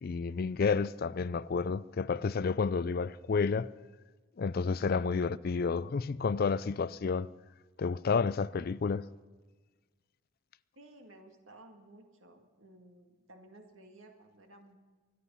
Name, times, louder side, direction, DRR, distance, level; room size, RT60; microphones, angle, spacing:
voice 1, 0.0-3.7 4.4-7.3 7.8-9.1, left 5 dB, 50° left, 0.4 m, -30 dB
voice 2, 10.8-14.8, right 1 dB, 85° right, 2.1 m, -56 dB
24.0 x 10.0 x 5.6 m
head